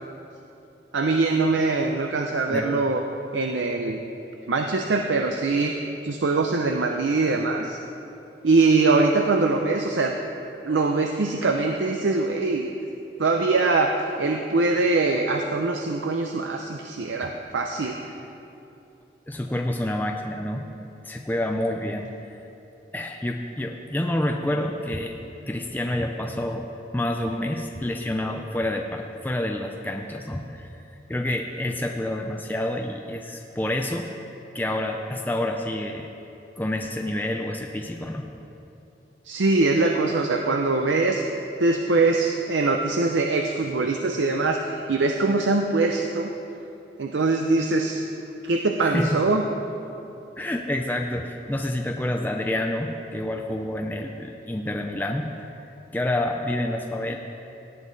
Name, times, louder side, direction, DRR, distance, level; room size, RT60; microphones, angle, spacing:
voice 1, 0.9-3.0 3.3-4.0 4.5-5.7 6.0-7.8 8.4-10.1 10.6-12.7 13.2-13.9 14.2-17.9 39.3-41.2 41.6-46.3 47.0-48.0 48.4-49.4, right 3 dB, 90° right, 3 dB, 0.6 m, -22 dB
voice 2, 19.3-20.7 21.0-22.1 22.9-25.2 25.5-26.7 26.9-30.8 31.1-34.1 34.5-36.1 36.6-38.3 48.8-49.2 50.4-55.3 55.9-57.2, left 1 dB, 10° left, 3 dB, 0.4 m, -28 dB
18.0 x 8.3 x 4.0 m, 2.8 s
head